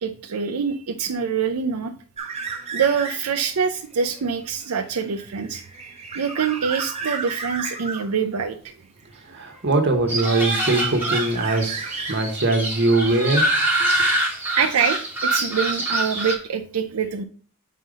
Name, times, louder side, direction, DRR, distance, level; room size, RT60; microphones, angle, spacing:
voice 1, 0.0-1.9 2.7-5.6 6.1-8.7 14.6-17.2, right 6 dB, 85° right, 6 dB, 0.5 m, -25 dB
sound 1, 2.2-3.5 3.9-8.1 9.1-9.9 10.2-12.6, right 5 dB, 30° right, 1.0 m, -33 dB
voice 2, 9.3-13.5 13.8-13.9, right 2 dB, 50° right, 5 dB, 1.2 m, -21 dB
sound 2, 10.1-16.3, right 1 dB, 10° right, 1.3 m, -24 dB
5.5 x 4.2 x 5.0 m, 0.42 s
head